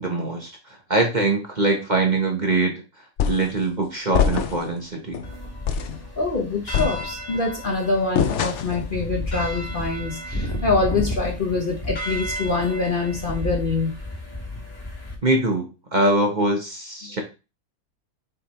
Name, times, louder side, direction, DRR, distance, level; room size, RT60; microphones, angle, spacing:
voice 1, 0.0-2.8 3.3-5.2 15.2-17.2, right 2 dB, 30° right, 2 dB, 1.2 m, -23 dB
sound 1, 3.2-3.6 4.1-4.7 5.1-5.3 5.7-6.0 6.7-7.4 8.2-8.9, left 7 dB, 60° left, 0.9 m, -24 dB
sound 2, 5.2-15.1, left 1 dB, 15° left, 1.8 m, -32 dB
voice 2, 6.2-14.0 17.0-17.1, left 3 dB, 35° left, 0 dB, 1.1 m, -25 dB
6.9 x 3.7 x 4.3 m, 0.30 s
omnidirectional pair, 1.6 m